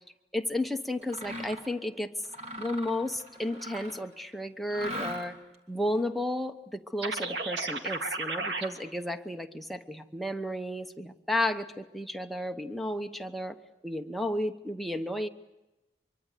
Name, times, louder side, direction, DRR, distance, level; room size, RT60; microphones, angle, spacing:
voice 1, 0.3-2.1 2.6-5.4 5.7-13.6 13.8-15.3, left 1 dB, ahead, 5 dB, 1.0 m, -33 dB
Mechanisms, 1.0-1.7 2.2-4.1 4.7-5.5, equal, 40° right, 3.0 m, -40 dB
sound 1, 7.0-8.7, right 3 dB, 75° right, 2.1 m, -33 dB
24.5 x 23.5 x 8.3 m, 1.0 s
head